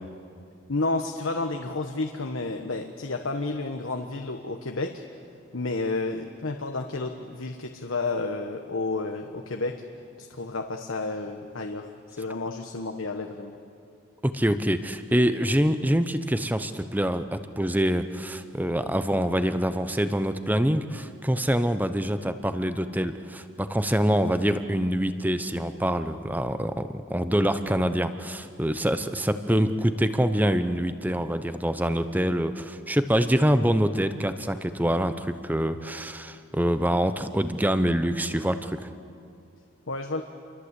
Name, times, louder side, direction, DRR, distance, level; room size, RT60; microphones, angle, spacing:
voice 1, 0.7-4.9 5.5-9.8 10.2-13.5 39.9-40.2, left 3 dB, 75° left, 4 dB, 1.4 m, -31 dB
voice 2, 14.2-38.9, equal, 10° right, 10 dB, 0.9 m, -25 dB
29.0 x 23.5 x 8.4 m, 2.4 s
head